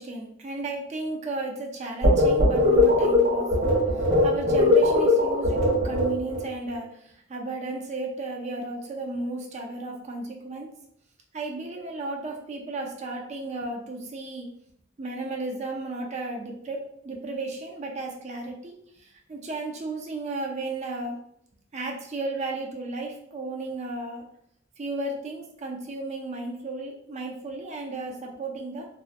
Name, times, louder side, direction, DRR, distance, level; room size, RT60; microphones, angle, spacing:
voice 1, 0.0-10.7 11.3-14.5 15.0-21.2 21.7-24.2 24.8-28.9, right 2 dB, 35° right, 1 dB, 0.4 m, -34 dB
sound 1, 2.0-6.5, left 2 dB, 65° right, 1.2 m, -20 dB
2.3 x 2.1 x 2.5 m, 0.71 s
head